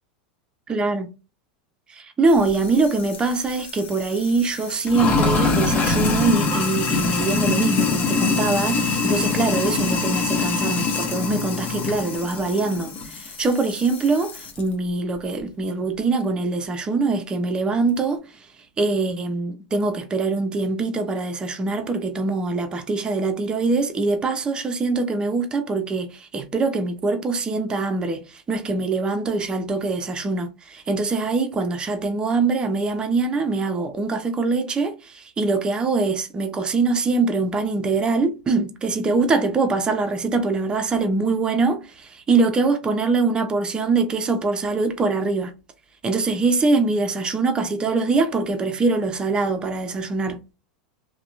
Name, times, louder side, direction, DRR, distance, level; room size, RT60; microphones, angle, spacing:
voice 1, 0.7-1.1 1.9-18.2 18.8-45.5 46.0-50.4, right 3 dB, 20° right, 0.5 m, -23 dB
Sink (filling or washing), 2.3-14.6, left 3 dB, 40° left, 0.7 m, -24 dB
2.8 x 2.1 x 2.4 m
hypercardioid pair, 95°, 4 cm